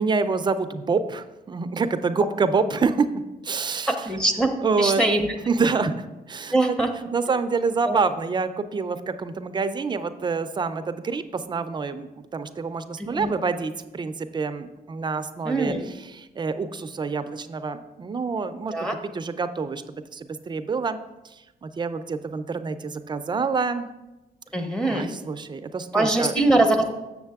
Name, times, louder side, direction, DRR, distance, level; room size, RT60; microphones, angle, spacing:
voice 1, 0.0-3.1 3.4-4.1 4.6-5.0 5.5-6.8 7.1-18.7 19.1-21.0 21.2-23.9 24.8-26.3, right 4 dB, 30° right, 10 dB, 0.4 m, -27 dB
voice 2, 3.9-5.3 6.5-6.9 7.9-8.0 13.0-13.3 15.4-15.8 18.7-19.0 24.5-25.1 25.9-26.9, right 2 dB, 5° left, 3 dB, 0.7 m, -22 dB
7.0 x 6.5 x 3.5 m, 1.0 s
cardioid pair, 135°, 16 cm